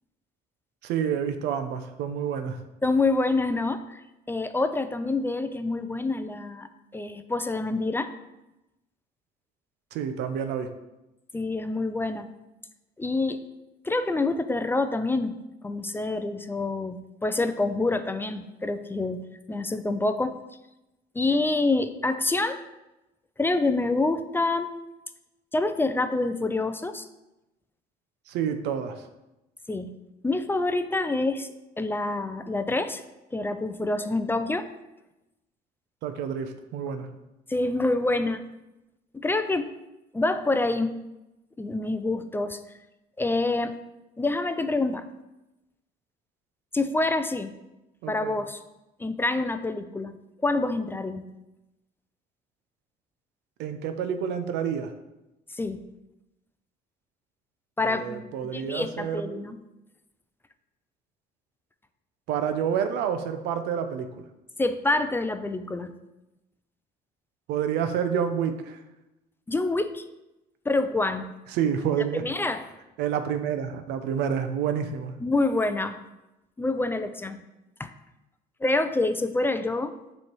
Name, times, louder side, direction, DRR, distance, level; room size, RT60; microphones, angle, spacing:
voice 1, 0.8-2.6 9.9-10.7 28.3-29.1 36.0-37.1 48.0-48.4 53.6-54.9 57.8-59.5 62.3-64.3 67.5-68.8 71.5-72.2 73.0-75.1, right 8 dB, 85° right, 8 dB, 0.6 m, -29 dB
voice 2, 2.8-4.0 4.3-8.1 11.3-12.3 13.0-13.4 13.8-15.4 15.6-20.4 21.2-22.6 23.4-24.7 25.5-27.1 29.7-30.0 30.2-31.5 31.8-33.0 33.3-34.7 37.5-38.4 39.1-39.7 40.1-41.0 41.6-42.6 43.2-43.7 44.2-45.1 46.7-47.5 48.1-48.6 49.0-50.2 50.4-51.3 55.5-55.8 57.8-59.6 64.6-65.9 69.5-70.0 70.7-71.4 72.2-72.6 75.2-76.0 76.6-77.4 77.8-77.9 78.6-79.9, left 2 dB, 15° left, 10 dB, 0.3 m, -27 dB
7.1 x 3.2 x 4.5 m, 0.96 s
cardioid pair, 110°, 17 cm